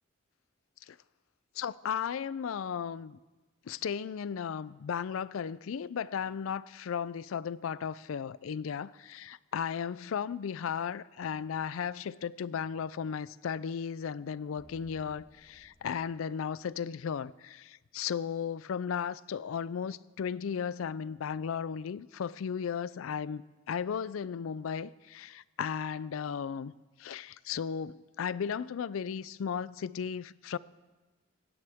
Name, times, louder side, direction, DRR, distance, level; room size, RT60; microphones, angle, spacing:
voice 1, 1.6-3.2 3.7-23.4 23.7-26.7 27.0-30.6, left 7 dB, 80° left, 0.4 m, -35 dB
sound 1, 14.6-17.2, left 1 dB, 10° left, 1.4 m, -61 dB
25.0 x 9.6 x 3.5 m
head